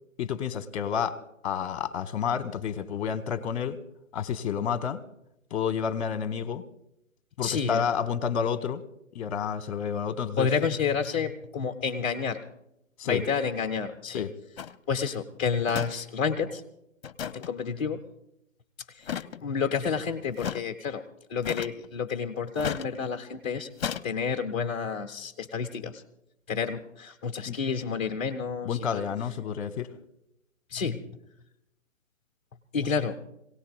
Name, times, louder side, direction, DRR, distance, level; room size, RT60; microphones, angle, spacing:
voice 1, 0.2-1.2 1.4-3.8 4.1-5.0 5.5-6.6 7.4-8.8 9.1-10.5 13.0-13.2 14.1-14.3 27.5-27.6 28.6-29.9, left 7 dB, 25° left, 10 dB, 1.1 m, -30 dB
voice 2, 7.4-7.8 10.4-12.4 13.0-14.3 14.9-16.6 17.3-18.0 18.9-21.0 21.3-23.7 24.0-26.0 26.5-29.0 30.7-31.0 32.7-33.2, left 6 dB, 10° left, 4 dB, 0.5 m, -30 dB
sound 1, 14.6-14.8 15.7-15.9 16.2-16.3 17.0-17.5 19.0-19.4 20.4-20.6 21.4-21.9 22.6-22.9 23.8-24.0, left 8 dB, 50° left, 0.7 m, -33 dB
26.0 x 18.0 x 2.3 m, 0.81 s
figure-of-eight pair, 140°, 40 cm